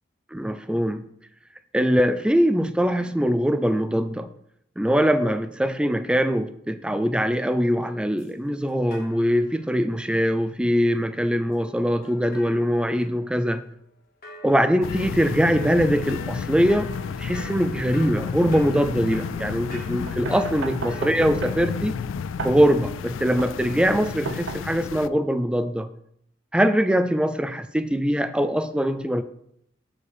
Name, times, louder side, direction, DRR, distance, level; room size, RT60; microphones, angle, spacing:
voice 1, 0.3-1.0 1.7-4.3 4.8-13.6 14.4-22.0 22.4-25.9 26.5-29.2, equal, 5° right, 11 dB, 0.4 m, -22 dB
sound 1, 8.2-8.3 8.9-9.7 10.1-10.2 12.0-13.6 14.2-21.1, equal, 50° left, 1.7 m, -44 dB
sound 2, 14.8-25.1, left 6 dB, 85° left, 0.3 m, -32 dB
sound 3, 20.1-25.1, right 4 dB, 70° right, 0.7 m, -35 dB
6.9 x 4.8 x 6.7 m, 0.73 s
head